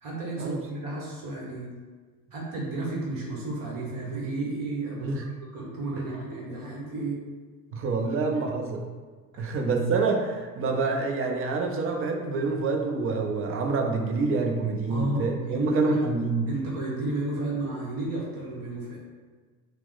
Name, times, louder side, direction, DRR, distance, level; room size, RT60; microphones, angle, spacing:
voice 1, 0.0-1.7 2.3-5.2 5.5-7.2 8.0-8.1 9.3-9.6 14.9-16.0 16.5-19.0, right 2 dB, 45° right, -4 dB, 1.2 m, -32 dB
voice 2, 7.7-8.8 9.4-16.5, right 3 dB, 30° right, 3 dB, 0.5 m, -27 dB
2.9 x 2.1 x 3.8 m, 1.4 s
hypercardioid pair, 75°, 46 cm